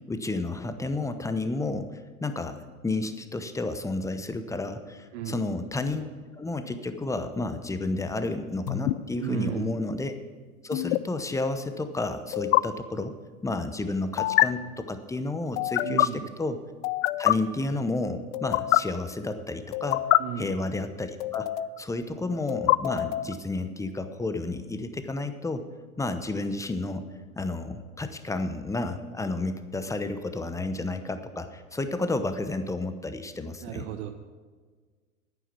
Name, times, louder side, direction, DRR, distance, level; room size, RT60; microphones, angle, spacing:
voice 1, 0.1-6.1 6.4-10.1 10.6-13.1 13.4-16.6 17.2-20.0 20.4-21.5 21.8-25.6 26.0-27.0 27.4-33.8, left 2 dB, 5° left, 9 dB, 0.8 m, -31 dB
voice 2, 5.1-5.4 9.2-9.8 15.8-16.3 20.2-20.6 33.6-34.1, right 9 dB, 60° right, 6 dB, 1.0 m, -34 dB
sound 1, 8.7-8.9 10.7-11.0 12.3-12.6 14.2-14.5 15.6-16.1 16.8-17.3 18.3-18.8 19.7-20.2 21.2-21.8 22.5-23.3, left 17 dB, 55° left, 0.5 m, -24 dB
10.0 x 9.4 x 6.1 m, 1.5 s
hypercardioid pair, 90°, 42 cm